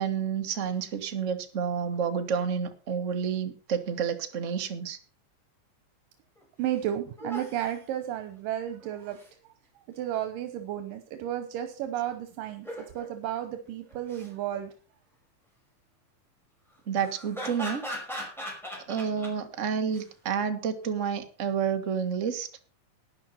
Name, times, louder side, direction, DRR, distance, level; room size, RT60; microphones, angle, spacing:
voice 1, 0.0-5.0 16.9-17.8 18.9-22.5, right 7 dB, 45° right, 6 dB, 0.9 m, -29 dB
sound 1, 6.4-6.5 6.7-6.8 7.2-7.7 8.8-9.3 12.5-13.1 13.9-14.3 16.9-19.3 19.9-20.0, equal, ahead, 5.1 m, -39 dB
voice 2, 6.6-9.2 10.0-14.7, right 11 dB, 80° right, 8 dB, 2.7 m, -33 dB
12.0 x 9.8 x 5.7 m, 0.37 s
omnidirectional pair, 3.9 m